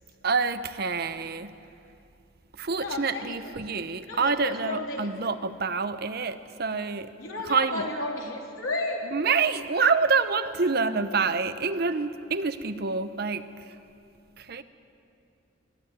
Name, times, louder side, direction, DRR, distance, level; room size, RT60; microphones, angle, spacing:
voice 1, 0.2-1.6 2.5-7.1 7.4-7.9 9.1-13.8 14.4-14.6, right 4 dB, 50° right, 11 dB, 0.8 m, -27 dB
voice 2, 2.8-3.5 4.1-5.3 7.2-9.0, left 2 dB, 85° left, -1 dB, 3.4 m, -33 dB
22.0 x 13.0 x 9.5 m, 2.7 s
head